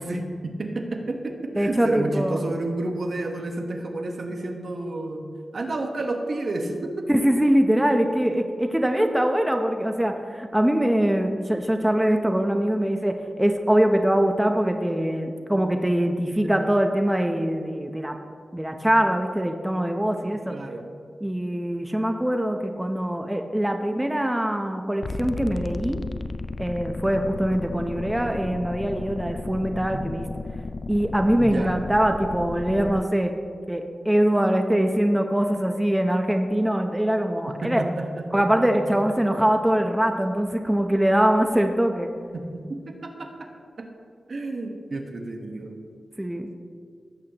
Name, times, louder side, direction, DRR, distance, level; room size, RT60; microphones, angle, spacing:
voice 1, 0.0-5.2 5.5-7.1 8.8-8.9 16.4-16.7 20.5-20.9 29.9-30.2 31.4-31.8 37.5-39.0 39.2-39.3 42.3-43.5 43.8-43.9 44.3-45.8, right 2 dB, 65° right, 3 dB, 1.3 m, -31 dB
voice 2, 1.6-2.4 7.1-18.2 18.5-20.5 21.2-26.0 26.6-30.2 30.9-33.3 33.7-37.8 38.3-42.1 46.2-46.5, right 1 dB, 10° right, 5 dB, 0.7 m, -23 dB
sound 1, 25.0-33.0, left 3 dB, 55° left, 0.4 m, -34 dB
17.0 x 8.2 x 3.0 m, 2.1 s
cardioid pair, 60°, 0 cm